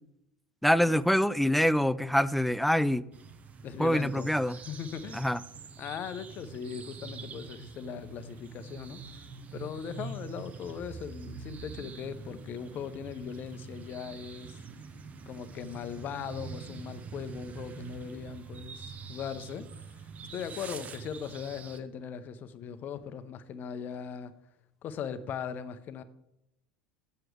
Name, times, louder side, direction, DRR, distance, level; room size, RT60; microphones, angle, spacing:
voice 1, 0.6-3.0 3.8-4.6 5.1-5.4, equal, ahead, 16 dB, 0.3 m, -25 dB
sound 1, 3.1-21.8, right 5 dB, 30° right, 0.8 m, -45 dB
voice 2, 3.6-5.2 5.8-14.6 15.3-20.0 20.3-24.3 24.8-26.0, left 7 dB, 35° left, 12 dB, 0.7 m, -39 dB
7.7 x 7.6 x 4.7 m, 0.85 s
figure-of-eight pair, 75°, 5 cm